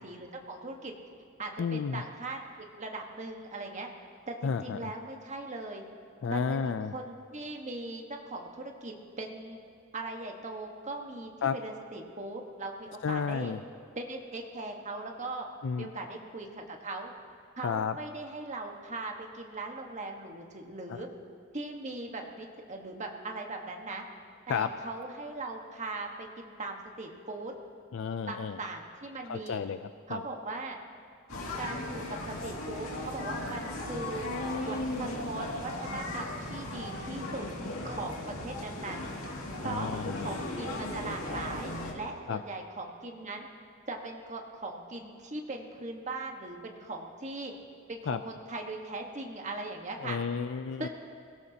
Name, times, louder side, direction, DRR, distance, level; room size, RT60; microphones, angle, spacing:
voice 1, 0.0-0.9 1.4-3.9 4.3-5.8 6.3-9.6 9.9-13.5 14.0-15.5 15.8-17.1 17.6-21.1 21.5-24.0 24.5-27.5 28.3-29.6 30.1-30.8 31.6-34.3 34.6-37.5 37.8-39.1 39.6-39.9 40.1-43.5 43.9-47.5 47.9-50.2 50.8-50.9, right 2 dB, 35° right, 2 dB, 1.4 m, -39 dB
voice 2, 1.6-2.0 4.4-4.9 6.2-7.0 11.4-11.6 13.0-13.6 15.6-15.9 17.6-18.0 20.9-21.0 24.5-24.7 27.9-28.6 29.2-30.2 39.6-40.3 42.3-42.4 48.1-48.2 50.0-50.9, left 6 dB, 65° left, 11 dB, 0.4 m, -32 dB
sound 1, 31.3-41.9, left 1 dB, 90° left, 2.3 m, -37 dB
24.0 x 17.0 x 2.9 m, 2.2 s
head